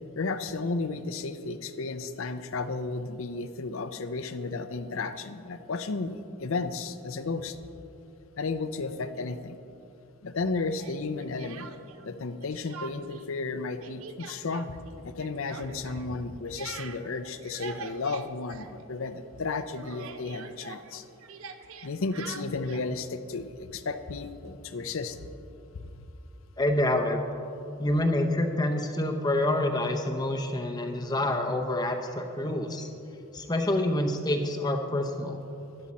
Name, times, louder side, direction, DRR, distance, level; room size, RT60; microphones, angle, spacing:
voice 1, 0.2-7.6 8.4-9.6 10.2-11.7 12.0-14.8 15.0-21.0 21.8-25.2 25.7-25.9, left 3 dB, 60° left, 11 dB, 0.6 m, -33 dB
Speech, 10.8-12.1 12.4-13.3 13.5-19.2 19.5-22.9, right 5 dB, 65° right, 0.6 m, -44 dB
voice 2, 26.6-27.2 27.8-32.9 33.3-35.4, left 1 dB, 20° left, 4 dB, 0.6 m, -27 dB
12.0 x 12.0 x 4.2 m, 2.7 s
head